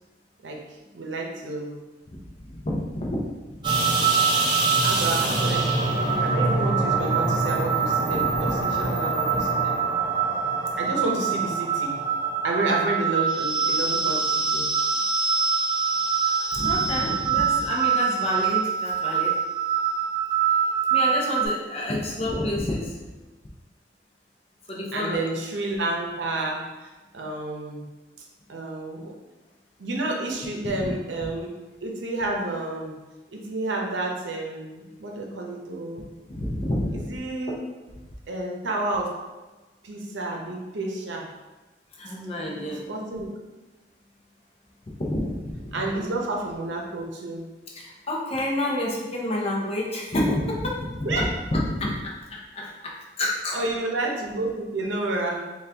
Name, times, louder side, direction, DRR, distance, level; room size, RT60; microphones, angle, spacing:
voice 1, 0.9-1.8 4.8-9.8 10.7-12.0 12.4-14.7 24.9-27.9 28.5-29.1 29.8-31.5 31.8-33.0 33.3-36.1 36.9-37.6 38.3-39.1 39.8-41.3 42.1-42.2 42.6-43.3 45.7-47.4 51.0-51.2 53.5-55.4, right 2 dB, 80° right, -1 dB, 0.7 m, -30 dB
voice 2, 2.5-3.2 3.5-3.7 8.1-8.5 8.8-8.9 9.3-9.4 16.5-19.4 20.9-23.0 24.7-25.2 30.8-30.9 31.2-31.3 36.3-37.1 42.0-42.9 45.0-45.6 47.7-51.3 51.5-53.6, left 1 dB, 35° left, -2 dB, 0.6 m, -29 dB
sound 1, 3.6-21.5, right 5 dB, 25° right, 0.6 m, -24 dB
4.1 x 2.4 x 3.4 m, 1.2 s
head